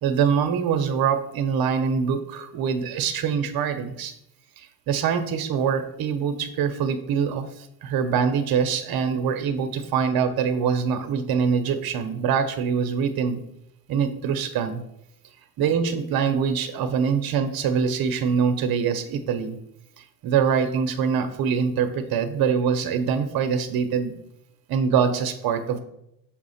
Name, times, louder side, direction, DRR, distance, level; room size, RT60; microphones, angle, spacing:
voice 1, 0.0-4.1 4.6-13.4 13.9-14.8 15.6-19.6 20.0-24.1 24.7-25.8, right 6 dB, 50° right, 8 dB, 0.8 m, -24 dB
7.0 x 2.4 x 5.6 m, 0.80 s
cardioid pair, 125°, 47 cm